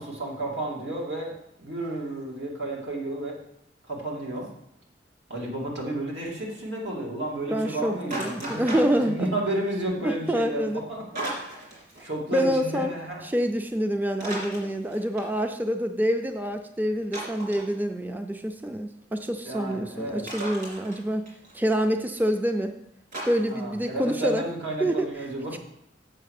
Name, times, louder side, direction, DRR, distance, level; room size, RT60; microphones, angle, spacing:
voice 1, 0.0-3.4 3.9-4.5 5.3-8.7 8.9-11.7 12.0-13.2 19.4-20.3 23.4-25.6, right 2 dB, 80° right, -3 dB, 2.6 m, -32 dB
voice 2, 7.5-9.3 10.0-10.8 12.3-12.9 13.2-21.3 21.5-22.7 23.3-24.4 24.8-25.1, equal, 10° right, 6 dB, 0.4 m, -26 dB
sound 1, 8.1-9.4 11.2-12.0 12.3-12.4 14.1-15.5 17.1-17.7 20.3-21.5 23.1-23.9, right 1 dB, 50° right, 3.3 m, -36 dB
7.6 x 5.8 x 6.5 m, 0.77 s
head